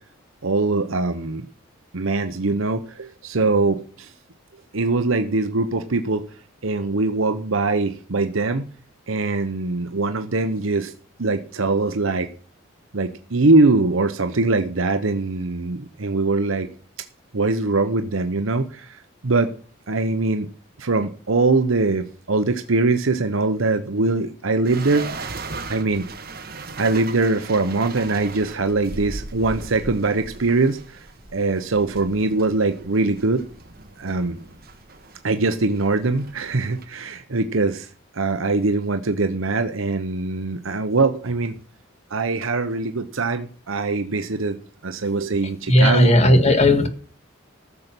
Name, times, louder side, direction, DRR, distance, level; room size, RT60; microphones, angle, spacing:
voice 1, 0.4-1.4 1.9-4.1 4.7-6.2 6.6-8.7 9.1-10.9 11.2-12.3 12.9-16.7 17.3-19.5 19.9-20.5 20.8-25.3 25.7-26.1 26.8-31.0 31.3-33.4 34.0-34.4 35.2-41.6 42.1-44.6 44.8-46.1, right 3 dB, 75° right, 0.9 m, -22 dB
sound 1, 24.6-36.8, right 3 dB, 45° right, 1.5 m, -38 dB
voice 2, 45.7-46.9, left 1 dB, 30° left, 1.6 m, -15 dB
14.5 x 6.8 x 6.1 m
head